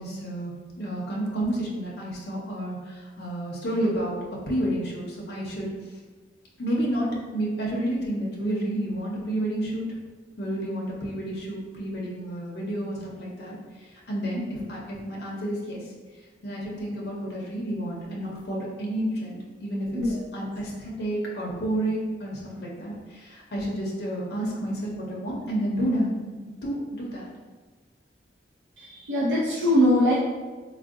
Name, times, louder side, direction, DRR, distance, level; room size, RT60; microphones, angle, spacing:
voice 1, 0.0-5.7 6.6-9.9 10.4-15.8 16.4-27.3, right 1 dB, 60° left, -4 dB, 0.5 m, -30 dB
voice 2, 28.8-30.1, equal, 75° right, -7 dB, 0.5 m, -22 dB
3.4 x 2.1 x 2.4 m, 1.3 s
head